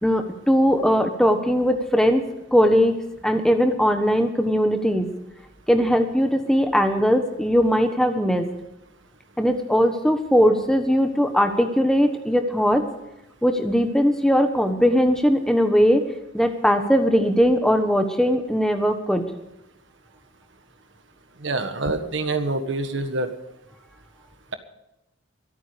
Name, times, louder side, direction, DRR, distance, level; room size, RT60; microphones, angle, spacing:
voice 1, 0.0-3.0 3.2-5.1 5.7-8.5 9.4-12.8 13.4-16.0 16.3-19.3, equal, 5° left, 6 dB, 1.2 m, -20 dB
voice 2, 21.4-23.3, right 2 dB, 65° right, 8 dB, 1.5 m, -26 dB
23.5 x 9.1 x 5.1 m, 0.91 s
head